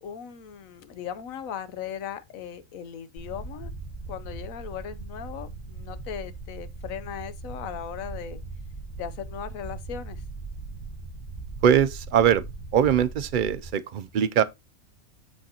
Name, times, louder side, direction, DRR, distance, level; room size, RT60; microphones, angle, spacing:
voice 1, 0.0-3.7 4.1-8.4 9.0-10.2, left 8 dB, 85° left, 1.2 m, -38 dB
sound 1, 3.2-13.7, right 3 dB, 35° left, 2.0 m, -39 dB
voice 2, 11.6-12.4 12.7-14.4, right 9 dB, 60° right, 0.5 m, -21 dB
7.0 x 6.2 x 2.8 m
omnidirectional pair, 1.4 m